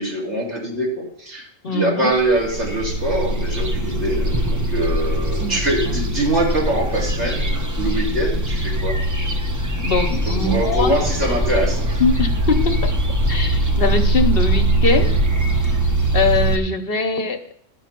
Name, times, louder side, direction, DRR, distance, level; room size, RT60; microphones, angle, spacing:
voice 1, 0.0-7.5 7.8-9.0 10.3-12.0, right 1 dB, 70° right, -3 dB, 3.3 m, -23 dB
voice 2, 1.6-2.1 9.8-11.0 12.0-12.9 13.3-15.1 16.1-17.4, left 3 dB, 55° left, 6 dB, 1.0 m, -21 dB
sound 1, 2.3-16.6, right 1 dB, 20° right, 0.6 m, -21 dB
13.5 x 5.9 x 5.9 m, 0.69 s
omnidirectional pair, 1.3 m